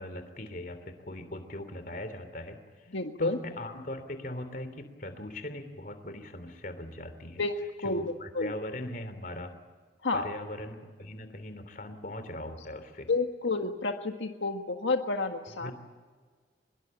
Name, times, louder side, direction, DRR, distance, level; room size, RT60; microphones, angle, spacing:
voice 1, 0.0-2.9 3.2-7.4 7.8-9.5 10.1-13.1 15.6-15.7, left 1 dB, 45° left, 9 dB, 3.1 m, -40 dB
voice 2, 2.9-3.4 7.4-7.5 7.8-8.0 8.4-8.5 10.0-10.3 13.1-15.7, left 3 dB, 85° left, 4 dB, 1.7 m, -30 dB
24.5 x 22.0 x 8.9 m, 1.5 s
head